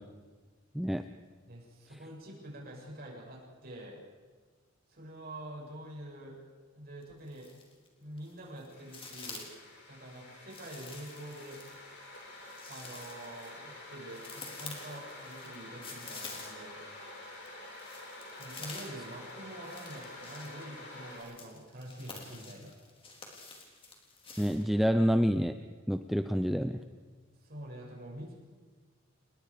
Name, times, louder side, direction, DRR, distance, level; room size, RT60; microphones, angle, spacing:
voice 1, 1.5-4.0 4.9-6.4 6.7-7.5 8.0-9.5 9.9-11.6 12.7-16.8 18.4-22.7 27.4-28.3, right 1 dB, 50° right, -2 dB, 7.4 m, -46 dB
sound 1, 7.0-7.9 8.2-9.6 10.5-16.8 17.1-24.6, left 3 dB, 30° left, 3.7 m, -48 dB
sound 2, 8.7-21.2, left 1 dB, 60° left, 6.7 m, -48 dB
voice 2, 24.4-25.6 25.9-26.8, equal, ahead, 8 dB, 0.6 m, -28 dB
30.0 x 20.5 x 5.1 m, 1.4 s
head